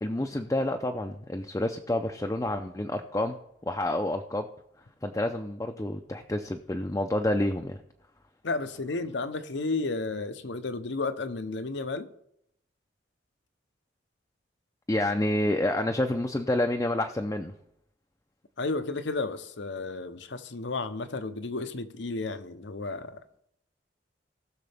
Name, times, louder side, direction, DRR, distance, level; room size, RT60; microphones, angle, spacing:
voice 1, 0.0-3.4 3.6-4.5 5.0-7.8 14.9-17.5, left 1 dB, 15° left, 0.5 m, -28 dB
voice 2, 8.4-12.1 18.6-23.2, left 3 dB, 70° left, 0.8 m, -32 dB
19.0 x 6.6 x 3.5 m
head